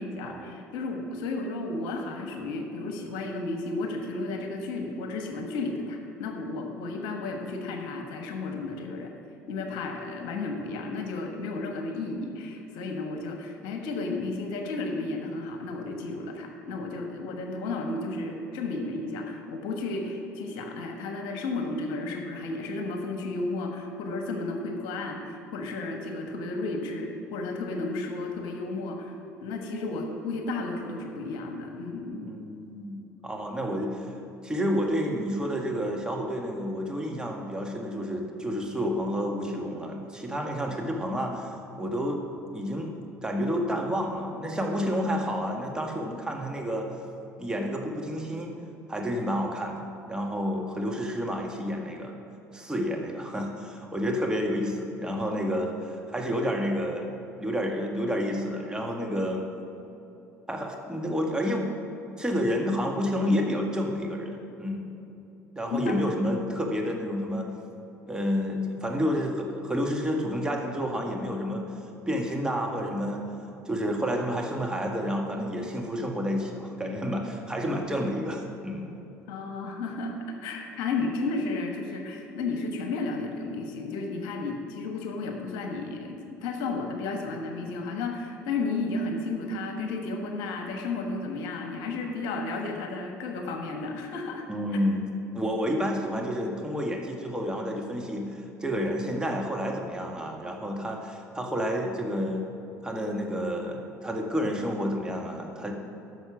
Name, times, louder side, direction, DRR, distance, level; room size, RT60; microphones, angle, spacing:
voice 1, 0.0-9.1 9.5-32.3 65.7-66.0 79.3-94.5, left 3 dB, 65° left, 3 dB, 1.3 m, -33 dB
voice 2, 32.2-34.1 34.4-42.2 42.5-42.9 43.2-46.9 47.4-48.5 48.9-49.8 50.1-52.2 52.5-57.1 57.4-59.5 60.5-61.7 62.2-64.9 65.6-67.5 68.1-71.6 72.1-73.3 73.7-78.9 94.5-95.1 95.3-102.5 102.8-105.7, equal, 10° right, 0 dB, 1.6 m, -30 dB
10.5 x 6.5 x 5.9 m, 3.0 s
hypercardioid pair, 65°, 8 cm